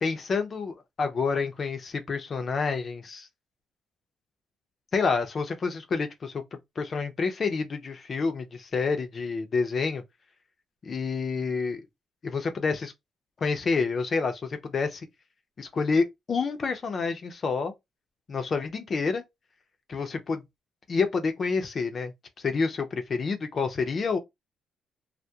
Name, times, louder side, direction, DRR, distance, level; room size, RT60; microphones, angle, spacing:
voice 1, 0.0-3.3 4.9-6.4 6.8-10.0 10.8-11.8 12.2-12.9 13.4-15.1 15.6-17.7 18.3-19.2 19.9-20.4 20.9-24.2, left 4 dB, 45° left, 0.5 m, -28 dB
2.3 x 2.1 x 2.6 m
cardioid pair, 90°, 0 cm